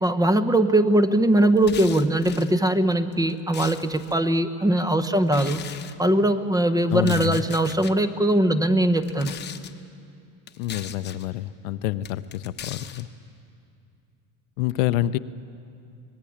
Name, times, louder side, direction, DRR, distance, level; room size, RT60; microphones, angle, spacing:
voice 1, 0.0-5.7 6.0-9.3, right 1 dB, 10° right, 10 dB, 0.9 m, -21 dB
sound 1, 1.6-2.5 3.1-4.2 5.3-5.9 6.9-7.9 9.0-9.7 10.5-11.3 12.0-13.0, left 9 dB, 25° left, 1.1 m, -39 dB
voice 2, 6.9-7.4 10.6-13.1 14.6-15.2, left 14 dB, 80° left, 12 dB, 0.8 m, -27 dB
24.5 x 20.0 x 8.7 m, 2.5 s
supercardioid pair, 130°, 38 cm